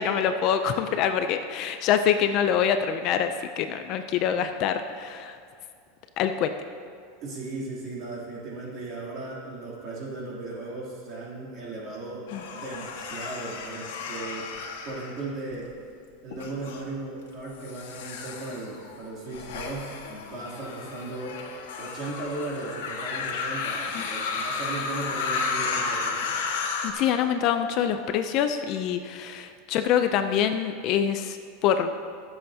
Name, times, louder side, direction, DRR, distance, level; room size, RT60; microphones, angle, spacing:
voice 1, 0.0-5.3 6.2-6.5 12.3-12.4 23.9-24.0 26.8-31.9, left 8 dB, 35° left, 8 dB, 0.4 m, -25 dB
voice 2, 7.2-14.5 14.8-15.7 16.2-21.3 21.8-26.4, right 2 dB, 35° right, -6 dB, 2.9 m, -36 dB
sound 1, 12.3-15.7 16.3-16.8 17.5-26.9, left 4 dB, 85° left, 1.4 m, -33 dB
22.5 x 7.7 x 2.8 m, 2.2 s
supercardioid pair, 165°, 0 cm